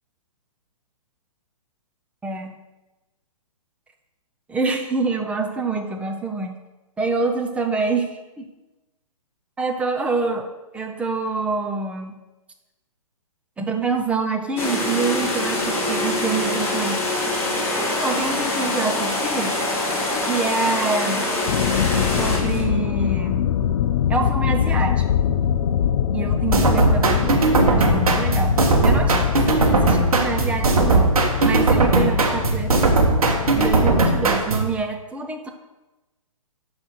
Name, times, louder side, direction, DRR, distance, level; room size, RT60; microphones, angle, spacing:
voice 1, 2.2-2.6 4.5-6.6 7.0-8.5 9.6-10.5 10.7-12.2 13.6-17.0 17.5-19.5 20.3-21.3 22.2-23.4 24.1-25.0 26.1-31.1 31.4-33.2 33.5-35.5, right 4 dB, 5° right, 4 dB, 0.5 m, -26 dB
sound 1, 14.6-22.6, left 2 dB, 10° left, 1.6 m, -24 dB
sound 2, 21.5-34.1, left 9 dB, 50° left, 0.5 m, -23 dB
sound 3, 26.5-34.7, right 3 dB, 75° right, 1.5 m, -18 dB
6.2 x 5.5 x 6.5 m, 1.1 s
hypercardioid pair, 140°, 19 cm